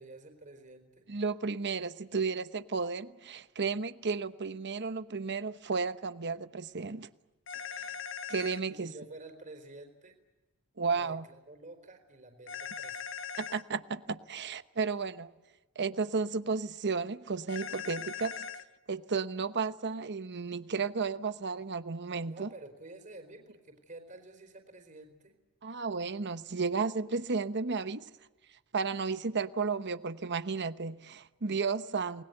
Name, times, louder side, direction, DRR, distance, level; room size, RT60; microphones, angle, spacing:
voice 1, 0.0-1.2 8.2-8.3 8.7-10.1 10.9-13.1 22.3-25.4, right 2 dB, 35° right, 4.3 m, -50 dB
voice 2, 1.1-7.1 7.8-7.9 8.3-8.9 10.8-11.2 13.4-15.3 15.8-18.5 18.9-22.5 25.6-28.0 28.7-32.2, right 4 dB, 50° right, 1.0 m, -33 dB
sound 1, 7.5-8.6 12.5-13.6 17.5-18.6, left 7 dB, 60° left, 1.5 m, -40 dB
29.5 x 21.0 x 8.1 m
head